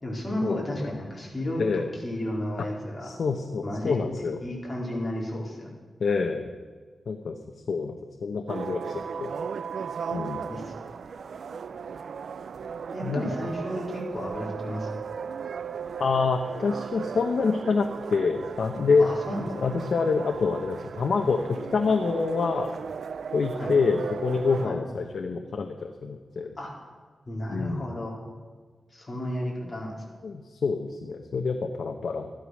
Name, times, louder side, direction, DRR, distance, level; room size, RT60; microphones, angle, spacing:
voice 1, 0.0-3.1 3.6-5.7 10.5-10.8 11.1-11.2 12.9-14.9 19.0-19.7 23.5-23.8 24.6-24.8 26.6-26.9 27.3-28.2 28.9-29.9, left 1 dB, 25° left, -3 dB, 4.2 m, -33 dB
voice 2, 3.0-4.4 6.0-6.5 7.1-7.4 7.7-8.8 9.2-9.3 10.1-10.4 13.0-13.2 16.0-19.1 19.6-22.7 23.3-26.5 27.5-27.8 30.2-32.3, left 4 dB, 65° left, 4 dB, 1.0 m, -26 dB
sound 1, 8.5-24.7, right 6 dB, 75° right, 0.4 m, -36 dB
14.0 x 12.0 x 6.4 m, 1.5 s
wide cardioid pair, 120°, 0 cm